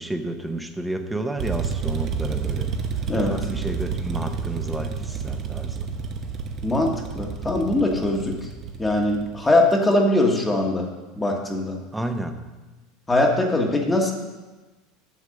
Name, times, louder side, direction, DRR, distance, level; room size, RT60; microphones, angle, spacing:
voice 1, 0.0-2.7 3.2-5.9 11.9-12.3, right 1 dB, 5° right, 6 dB, 0.8 m, -31 dB
sound 1, 1.4-9.5, right 6 dB, 35° right, 0.9 m, -30 dB
voice 2, 6.6-8.5 8.8-10.9 11.1-11.8 13.1-14.1, left 2 dB, 10° left, 1 dB, 1.3 m, -21 dB
8.4 x 6.4 x 6.4 m, 1.2 s
supercardioid pair, 130°, 0 cm